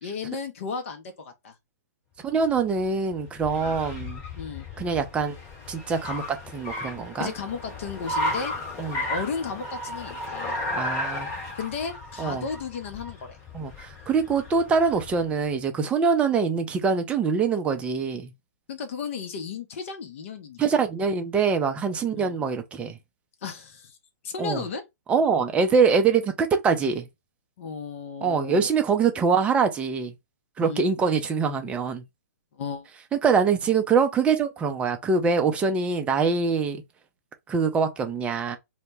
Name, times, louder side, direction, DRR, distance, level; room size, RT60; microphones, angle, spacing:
voice 1, 0.0-1.5 3.5-3.8 4.3-4.7 7.2-8.5 9.1-10.6 11.6-13.4 18.7-20.6 22.1-22.3 23.4-24.0 24.2-24.8 27.6-28.7 30.6-30.9 32.5-32.9, left 5 dB, 45° left, 0.5 m, -34 dB
voice 2, 2.2-4.2 4.8-5.3 5.7-7.3 8.8-9.1 10.7-11.3 12.2-12.5 13.5-18.3 20.6-23.0 24.4-24.6 25.1-27.1 28.2-30.1 30.6-32.0 33.2-36.8 37.5-38.6, right 5 dB, 10° right, 0.4 m, -24 dB
Car, 2.4-15.3, left 1 dB, 25° left, 1.1 m, -34 dB
2.1 x 2.1 x 3.2 m
figure-of-eight pair, 125°, 9 cm